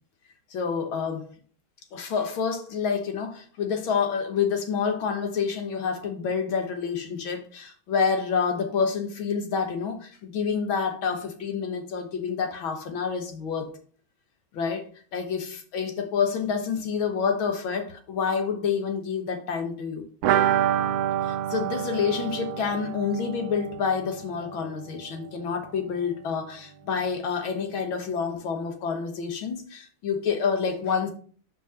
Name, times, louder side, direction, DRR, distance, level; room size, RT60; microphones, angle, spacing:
voice 1, 0.5-1.3 1.9-13.7 14.5-20.0 21.2-31.1, left 6 dB, 80° left, 2.0 m, -28 dB
sound 1, 20.2-25.8 26.1-26.2 26.5-26.6, right 11 dB, 85° right, 0.8 m, -28 dB
5.5 x 5.1 x 5.5 m
omnidirectional pair, 2.2 m